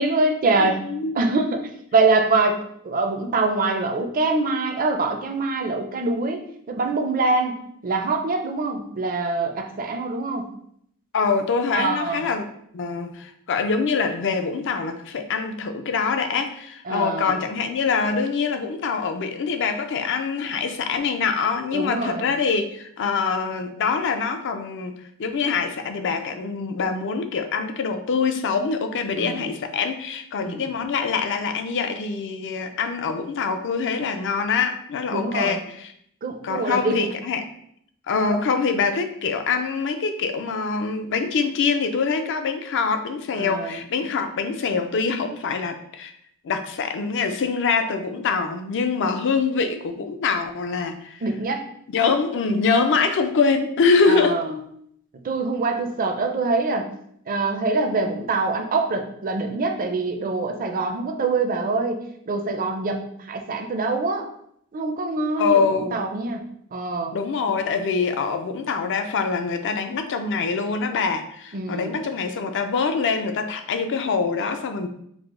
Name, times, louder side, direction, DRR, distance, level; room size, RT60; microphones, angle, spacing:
voice 1, 0.0-0.8 1.1-2.6 2.8-6.4 6.7-10.5 11.7-12.2 16.9-17.4 21.7-22.3 29.1-29.5 30.4-30.7 35.1-35.6 36.2-37.1 38.2-38.4 43.4-43.8 51.2-51.6 54.0-54.6 55.2-56.9 57.3-64.3 64.7-66.4 66.7-67.2 71.5-72.0, right 3 dB, 40° right, 4 dB, 0.5 m, -24 dB
voice 2, 0.6-1.1 11.1-12.4 12.7-24.9 25.2-35.9 36.4-37.5 38.1-46.1 46.4-51.2 51.9-54.4 65.4-66.0 67.1-74.9, left 5 dB, 55° left, 7 dB, 0.4 m, -24 dB
4.8 x 2.0 x 3.7 m, 0.70 s
head